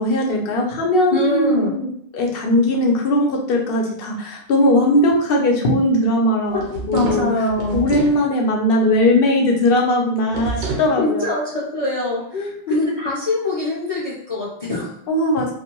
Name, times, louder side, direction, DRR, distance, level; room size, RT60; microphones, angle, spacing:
voice 1, 0.0-6.6 6.9-7.3 7.7-11.3 12.3-12.5 15.1-15.5, left 1 dB, 65° left, 0 dB, 0.8 m, -19 dB
voice 2, 1.1-1.8 6.5-6.6 6.9-7.8 11.0-14.9, left 2 dB, 40° left, -7 dB, 0.6 m, -23 dB
sound 1, 6.5-8.2 10.3-10.9, right 3 dB, 70° right, 0.9 m, -28 dB
2.5 x 2.2 x 2.9 m, 0.69 s
omnidirectional pair, 1.0 m